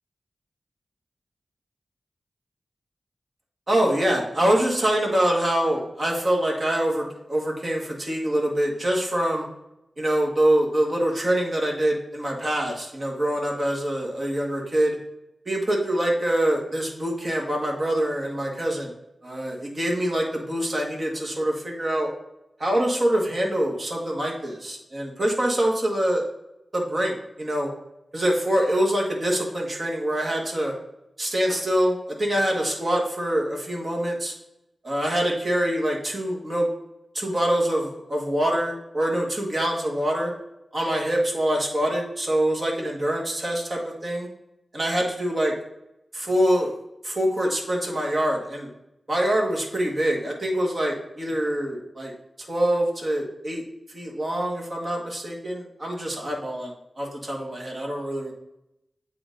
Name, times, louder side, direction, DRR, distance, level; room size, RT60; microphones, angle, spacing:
voice 1, 3.7-9.5 10.0-15.0 15.5-18.9 19.2-22.1 22.6-26.3 26.7-27.7 28.1-30.7 31.2-34.3 34.8-36.7 37.1-40.3 40.7-44.3 44.7-45.5 46.1-46.8 47.0-48.7 49.1-52.1 52.5-53.6 53.9-58.3, right 1 dB, 45° right, -1 dB, 1.7 m, -25 dB
8.7 x 3.0 x 3.9 m, 0.87 s
wide cardioid pair, 65°, 0 cm